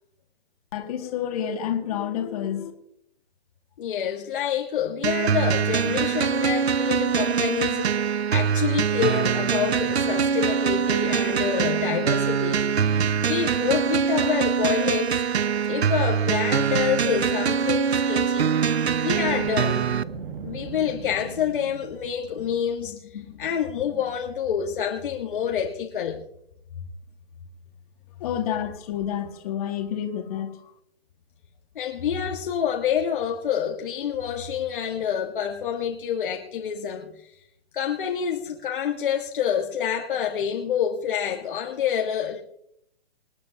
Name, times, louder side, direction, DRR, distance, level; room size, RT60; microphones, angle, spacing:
voice 1, 0.7-2.7 28.2-30.7, left 9 dB, 35° left, 4 dB, 2.1 m, -29 dB
voice 2, 3.8-15.3 15.7-18.5 19.0-19.9 20.4-26.2 31.7-37.3 37.7-42.4, left 8 dB, 55° left, 1 dB, 1.6 m, -27 dB
sound 1, 5.0-20.0, right 7 dB, 80° right, 0.7 m, -23 dB
Boom, 19.1-22.2, right 6 dB, 60° right, 1.9 m, -38 dB
27.0 x 9.1 x 2.9 m, 0.73 s
hypercardioid pair, 145°, 32 cm